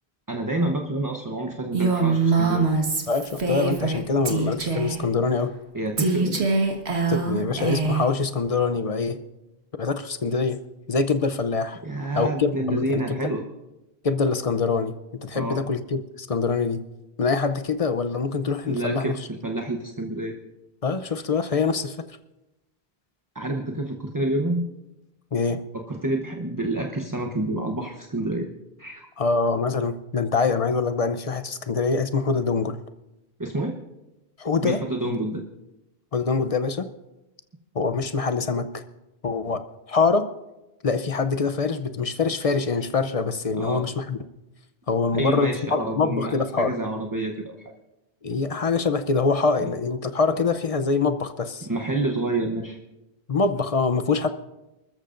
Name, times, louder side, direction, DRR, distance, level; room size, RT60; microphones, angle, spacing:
voice 1, 0.3-2.7 5.7-6.5 11.8-13.5 15.3-15.6 18.6-20.3 23.3-24.7 25.7-28.5 28.8-29.1 33.4-33.8 34.6-35.4 43.6-43.8 45.1-47.7 49.6-49.7 51.7-52.8, right 2 dB, 20° right, 3 dB, 0.9 m, -28 dB
Female speech woman speaking, 1.7-5.0 6.0-8.1, right 4 dB, 85° right, 1.8 m, -23 dB
voice 2, 3.1-5.5 7.1-9.2 9.8-10.6 10.9-11.8 12.2-13.3 14.0-14.9 15.2-16.8 17.2-19.2 20.8-22.0 25.3-25.6 29.2-32.8 34.4-35.2 36.1-36.9 37.7-38.8 39.2-39.6 39.9-40.3 40.8-44.2 44.9-46.7 48.2-51.7 53.3-54.3, left 4 dB, 40° left, 10 dB, 0.7 m, -24 dB
29.0 x 13.5 x 2.6 m, 1.0 s
omnidirectional pair, 1.1 m